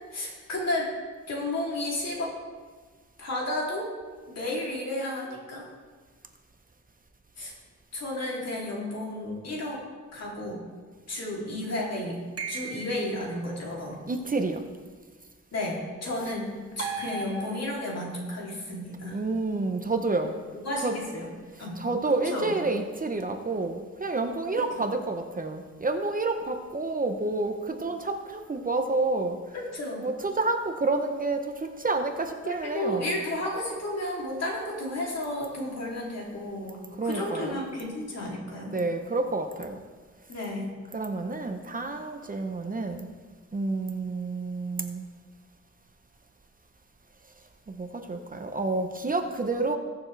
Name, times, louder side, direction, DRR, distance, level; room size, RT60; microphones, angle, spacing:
voice 1, 0.1-0.9 1.3-2.3 3.2-3.9 4.3-5.7 7.4-7.5 7.9-9.8 10.1-10.6 11.1-12.2 12.5-14.0 15.5-19.2 20.6-21.3 21.6-21.8 22.2-22.6 24.5-24.8 29.5-30.0 32.4-38.7 40.3-40.7, left 1 dB, 55° left, -3 dB, 3.0 m, -32 dB
sound 1, 12.4-13.3 16.8-18.0, right 4 dB, 50° right, 1.7 m, -36 dB
voice 2, 14.1-14.6 19.1-20.3 20.8-20.9 21.8-29.4 30.0-33.1 37.0-37.5 38.7-39.8 40.9-43.1 43.5-45.1 47.7-49.8, right 3 dB, 30° right, 5 dB, 0.8 m, -29 dB
21.0 x 7.0 x 3.3 m, 1.5 s
wide cardioid pair, 150°, 30 cm